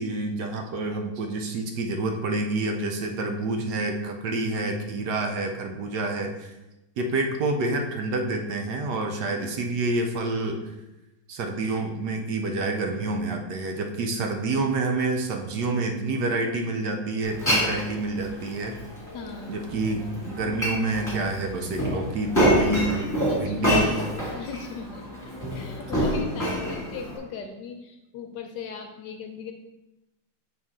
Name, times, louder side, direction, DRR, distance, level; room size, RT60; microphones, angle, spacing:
voice 1, 0.0-6.5 7.0-10.6 11.3-18.7 19.5-22.9 23.4-23.9, right 2 dB, 70° right, 4 dB, 1.2 m, -28 dB
Glass, 17.2-27.2, equal, 10° left, 2.1 m, -27 dB
voice 2, 19.1-19.6 23.3-23.8 24.3-25.1 25.5-29.5, left 5 dB, 70° left, 5 dB, 1.2 m, -38 dB
7.7 x 4.0 x 3.6 m, 0.97 s
omnidirectional pair, 2.1 m